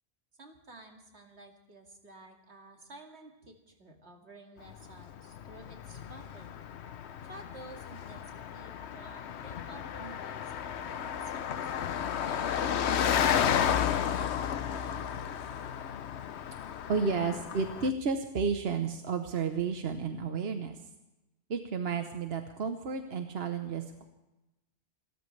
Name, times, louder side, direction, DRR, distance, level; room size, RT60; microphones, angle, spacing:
voice 1, 0.4-6.6 7.2-11.7 12.2-15.1, right 2 dB, 90° right, 2 dB, 2.5 m, -52 dB
Car passing by, 4.7-17.9, left 8 dB, 85° left, 1.0 m, -33 dB
voice 2, 16.9-20.9 21.5-24.0, right 5 dB, 70° right, 6 dB, 1.2 m, -32 dB
28.5 x 13.5 x 3.3 m, 0.98 s
omnidirectional pair, 1.1 m